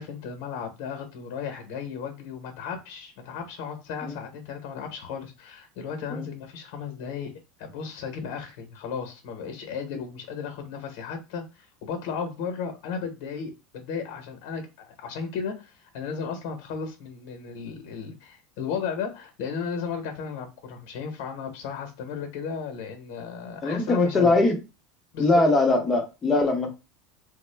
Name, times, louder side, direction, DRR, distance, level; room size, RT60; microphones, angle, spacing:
voice 1, 0.0-7.3 7.6-24.3 25.1-25.4, left 6 dB, 65° left, 0.9 m, -35 dB
voice 2, 23.6-24.6 25.2-26.7, left 2 dB, 20° left, 0.8 m, -21 dB
3.5 x 2.1 x 3.3 m
supercardioid pair, 155°, 0 cm